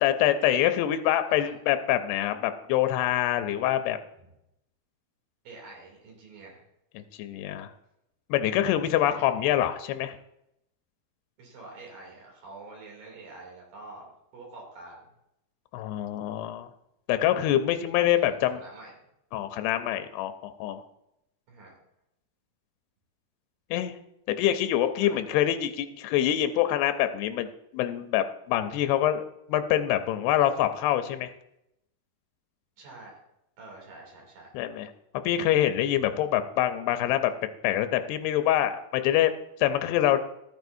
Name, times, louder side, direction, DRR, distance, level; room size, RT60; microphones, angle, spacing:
voice 1, 0.0-4.0 7.0-7.7 8.3-10.2 15.7-16.7 17.1-18.6 19.3-20.8 23.7-23.9 24.3-27.5 27.7-29.2 29.5-31.3 34.5-34.9 35.2-37.3 37.6-39.3 39.6-40.2, left 12 dB, 90° left, 9 dB, 2.7 m, -25 dB
voice 2, 5.4-6.6 9.0-9.2 11.4-15.1 17.7-18.9 21.5-21.7 25.0-25.3 32.8-33.1 33.6-34.5, right 3 dB, 60° right, -1 dB, 4.3 m, -47 dB
13.5 x 9.3 x 2.6 m, 0.83 s
omnidirectional pair, 4.6 m